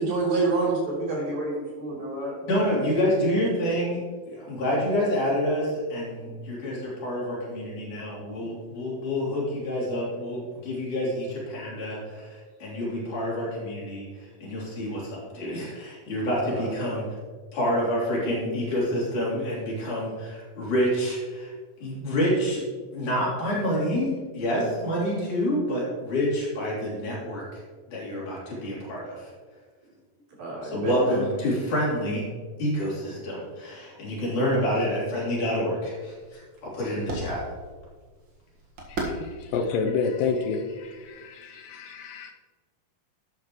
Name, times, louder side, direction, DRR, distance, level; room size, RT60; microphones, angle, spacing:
voice 1, 0.0-1.5 1.8-2.3 8.4-8.5 16.5-16.7 30.4-31.2, right 3 dB, 80° right, -6 dB, 5.4 m, -27 dB
voice 2, 2.5-4.0 4.3-17.0 17.6-21.5 21.8-22.6 22.9-27.6 27.9-29.3 30.6-32.2 32.6-37.4, equal, 60° left, -6 dB, 4.8 m, -28 dB
sound 1, 34.9-41.2, right 1 dB, 45° right, 1.9 m, -39 dB
voice 3, 38.9-42.3, left 5 dB, 80° left, 5 dB, 2.3 m, -29 dB
12.0 x 9.7 x 3.1 m, 1.5 s
omnidirectional pair, 4.0 m